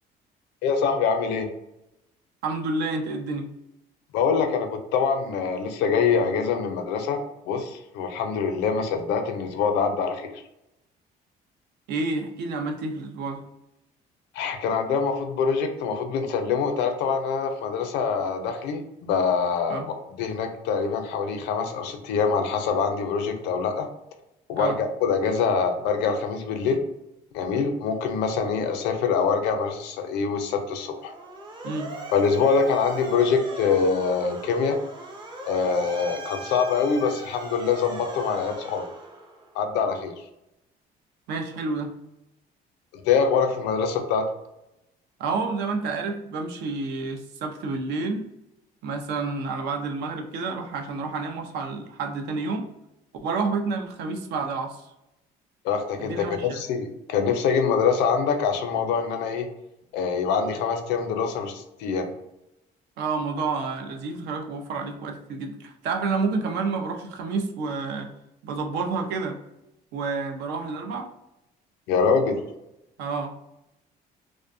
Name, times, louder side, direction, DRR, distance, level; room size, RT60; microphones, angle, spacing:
voice 1, 0.6-1.5 4.1-7.2 7.5-10.3 14.3-23.9 24.5-26.8 27.3-31.1 32.1-34.8 35.5-38.9 39.5-40.1 43.0-44.3 55.6-59.5 59.9-62.1 71.9-72.4, left 5 dB, 90° left, 6 dB, 0.5 m, -24 dB
voice 2, 2.4-3.5 11.9-13.4 19.7-19.9 24.6-24.8 31.6-31.9 41.3-41.9 45.2-48.3 48.8-52.7 53.2-54.9 56.0-56.6 63.0-68.1 68.4-69.4 69.9-71.1 73.0-73.3, right 4 dB, 80° right, 4 dB, 0.5 m, -29 dB
Motor vehicle (road) / Siren, 31.0-39.6, right 2 dB, 25° right, 0.5 m, -39 dB
2.6 x 2.1 x 2.5 m, 0.88 s
cardioid pair, 110°, 17 cm